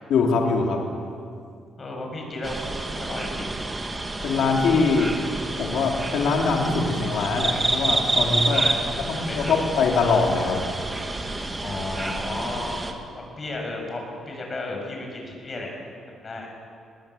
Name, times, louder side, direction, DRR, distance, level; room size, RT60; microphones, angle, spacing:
voice 1, 0.1-0.9 4.2-5.2 5.5-8.7 9.3-10.6, left 4 dB, 75° left, 0 dB, 3.4 m, -22 dB
voice 2, 1.8-3.5 8.6-9.5 11.6-12.8 13.2-15.7 16.2-16.5, left 2 dB, 35° left, 1 dB, 7.1 m, -34 dB
sound 1, 2.4-12.9, right 2 dB, 20° right, 2.2 m, -28 dB
22.0 x 19.0 x 8.6 m, 2.4 s
cardioid pair, 90°, 0 cm